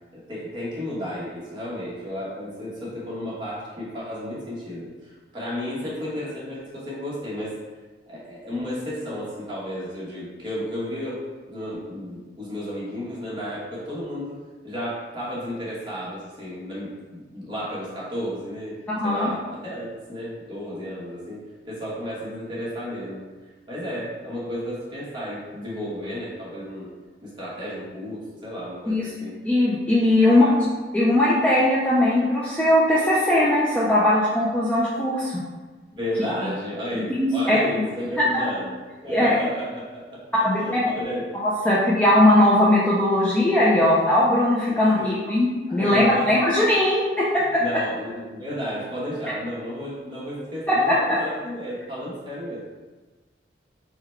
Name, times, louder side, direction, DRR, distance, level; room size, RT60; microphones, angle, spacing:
voice 1, 0.1-7.6 8.1-11.2 11.5-14.4 14.6-21.4 21.6-23.2 23.7-26.9 27.2-29.3 30.2-30.5 35.9-41.2 41.6-41.7 44.7-45.2 45.7-46.3 47.6-52.6, equal, 25° right, -8 dB, 1.1 m, -33 dB
voice 2, 19.0-19.3 28.9-29.1 29.4-30.5 30.9-35.4 37.2-37.6 38.2-38.5 39.1-39.3 40.4-40.8 41.4-47.6 50.7-51.2, left 1 dB, 10° left, -7 dB, 0.4 m, -19 dB
3.8 x 2.2 x 4.3 m, 1.3 s
head